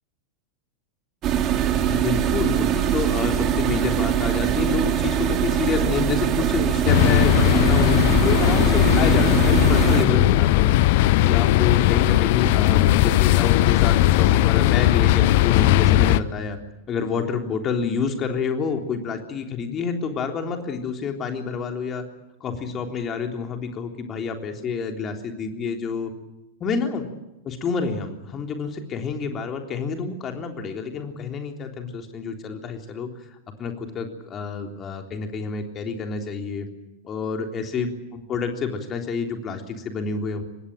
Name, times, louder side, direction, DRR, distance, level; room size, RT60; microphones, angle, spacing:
sound 1, 1.2-10.1, right 10 dB, 35° right, 2.6 m, -22 dB
voice 1, 1.8-16.6 16.9-22.0 22.4-26.1 26.6-27.1 27.4-33.1 33.6-36.7 37.0-40.4, left 5 dB, 30° left, 4 dB, 3.6 m, -28 dB
sound 2, 6.9-16.2, left 15 dB, 50° left, 0.8 m, -18 dB
25.0 x 19.5 x 9.0 m, 0.91 s
figure-of-eight pair, 90°, 0 cm